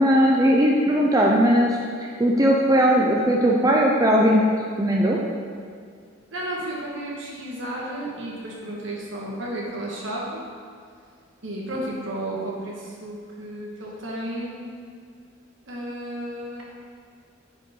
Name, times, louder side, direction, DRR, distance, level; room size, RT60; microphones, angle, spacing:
voice 1, 0.0-4.4 4.8-5.2, equal, 15° right, -2 dB, 0.5 m, -19 dB
voice 2, 6.3-10.4 11.4-14.6 15.7-16.6, right 1 dB, 65° right, -4 dB, 1.6 m, -32 dB
9.5 x 5.1 x 3.8 m, 2.2 s
head